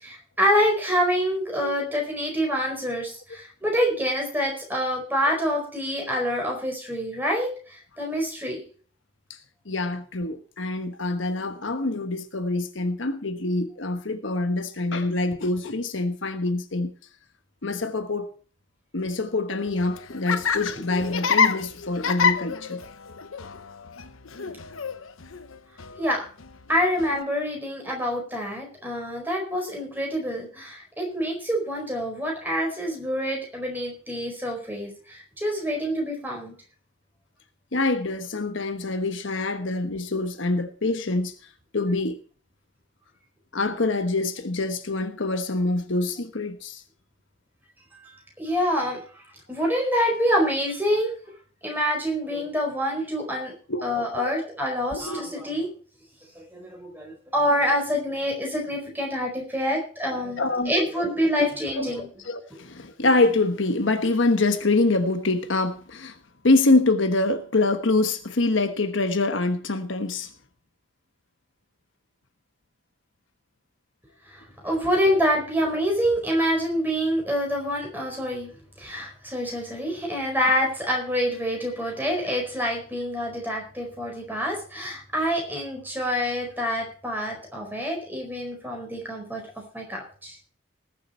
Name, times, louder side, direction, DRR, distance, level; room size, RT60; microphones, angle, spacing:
voice 1, 0.0-8.6 26.0-26.2 26.7-36.5 47.9-49.0 49.5-51.1 51.6-53.5 53.8-55.7 56.3-62.1 74.3-78.5 78.8-89.4 89.7-90.4, equal, 10° right, 4.7 m, -26 dB
voice 2, 9.7-16.9 17.6-18.3 18.9-22.8 37.7-41.3 41.7-42.2 43.5-46.8 53.7-53.8 54.1-54.3 54.9-55.2 60.4-60.7 61.4-61.5 61.8-61.9 62.2-66.1 66.4-70.3, left 2 dB, 65° left, 1.2 m, -25 dB
Laughter, 19.7-27.2, left 6 dB, 80° left, 0.9 m, -28 dB
19.5 x 7.6 x 4.5 m
head